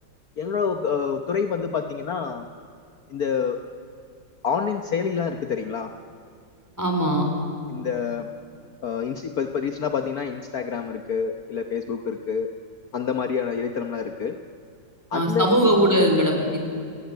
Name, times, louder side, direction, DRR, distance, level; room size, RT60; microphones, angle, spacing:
voice 1, 0.4-2.5 3.1-3.6 4.4-5.9 7.7-8.3 8.8-12.5 12.9-14.3 15.1-15.5, left 6 dB, 55° left, 6 dB, 1.4 m, -27 dB
voice 2, 6.8-7.2 15.1-16.6, equal, 10° right, 2 dB, 4.5 m, -20 dB
29.5 x 18.5 x 9.4 m, 2.5 s
omnidirectional pair, 2.0 m